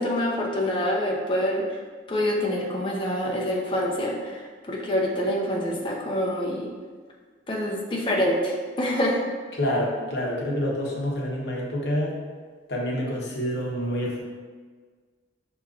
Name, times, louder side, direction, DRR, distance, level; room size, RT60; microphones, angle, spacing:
voice 1, 0.0-1.6 2.1-4.1 4.7-6.7 7.5-9.2, left 1 dB, 25° left, -2 dB, 0.5 m, -26 dB
voice 2, 9.5-12.2 12.7-14.2, equal, 65° left, -3 dB, 0.8 m, -27 dB
4.9 x 2.9 x 2.4 m, 1.5 s
head